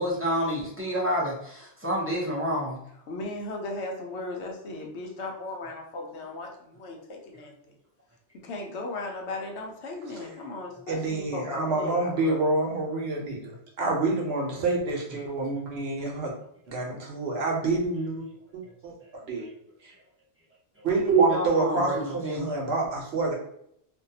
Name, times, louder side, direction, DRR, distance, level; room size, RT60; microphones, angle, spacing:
voice 1, 0.0-2.8 21.3-22.5, equal, 15° right, -6 dB, 0.5 m, -29 dB
voice 2, 3.1-7.7 8.4-12.4, left 2 dB, 80° left, 1 dB, 0.9 m, -36 dB
voice 3, 10.9-16.3 16.7-18.3 18.5-18.9 19.3-19.5 19.8-19.9 20.8-23.3, right 3 dB, 70° right, -1 dB, 0.9 m, -27 dB
2.6 x 2.2 x 2.7 m, 0.71 s
omnidirectional pair, 1.1 m